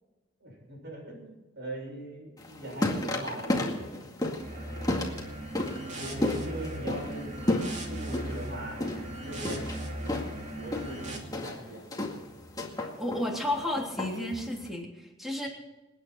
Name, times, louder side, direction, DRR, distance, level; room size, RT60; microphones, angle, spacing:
voice 1, 0.4-3.9 4.7-5.1 5.9-7.3 7.9-9.7 10.0-10.2 10.6-11.8 12.1-12.2, right 1 dB, 60° right, 0 dB, 6.7 m, -40 dB
sound 1, 2.4-14.7, left 1 dB, 20° left, 2.2 m, -33 dB
sound 2, 4.4-11.2, right 1 dB, 40° right, 2.6 m, -38 dB
voice 2, 12.8-15.5, left 1 dB, ahead, -1 dB, 3.3 m, -32 dB
28.0 x 9.5 x 4.4 m, 1.1 s
head